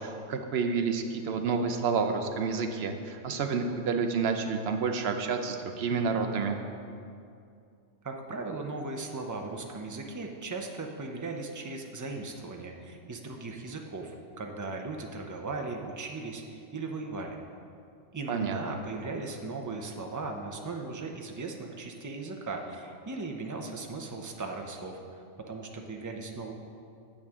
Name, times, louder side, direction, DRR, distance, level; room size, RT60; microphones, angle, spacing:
voice 1, 0.0-6.6 18.3-18.6, right 5 dB, 60° right, 6 dB, 0.8 m, -29 dB
voice 2, 8.0-17.4 18.1-25.0 25.5-26.5, right 3 dB, 25° right, 2 dB, 0.4 m, -37 dB
8.9 x 8.4 x 3.6 m, 2.5 s
omnidirectional pair, 1.3 m